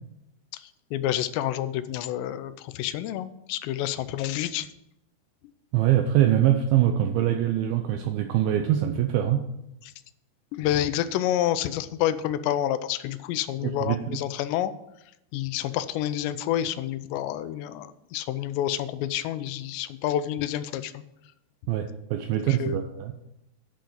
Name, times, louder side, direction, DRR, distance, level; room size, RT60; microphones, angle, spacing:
voice 1, 0.9-4.7 10.5-14.7 15.3-21.0 22.3-22.8, left 12 dB, 90° left, 13 dB, 2.8 m, -28 dB
voice 2, 5.7-9.4 13.6-14.2 21.7-23.1, right 11 dB, 80° right, 6 dB, 2.1 m, -23 dB
10.5 x 5.1 x 7.7 m, 0.85 s
omnidirectional pair, 4.9 m